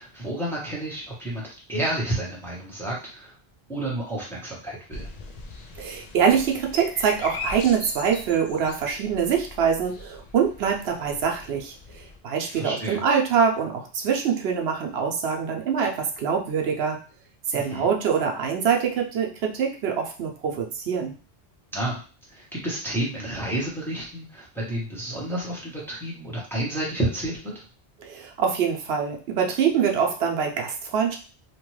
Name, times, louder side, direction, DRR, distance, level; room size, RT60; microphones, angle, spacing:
voice 1, 0.0-3.3 3.7-5.1 12.5-13.0 17.5-17.9 21.7-22.0 22.3-27.6, right 1 dB, ahead, -5 dB, 0.8 m, -30 dB
sound 1, 4.9-12.2, left 3 dB, 55° left, 0.5 m, -40 dB
voice 2, 5.8-17.0 17.5-21.1 28.0-31.2, right 7 dB, 80° right, 2 dB, 0.9 m, -24 dB
2.9 x 2.2 x 3.1 m, 0.37 s
omnidirectional pair, 1.0 m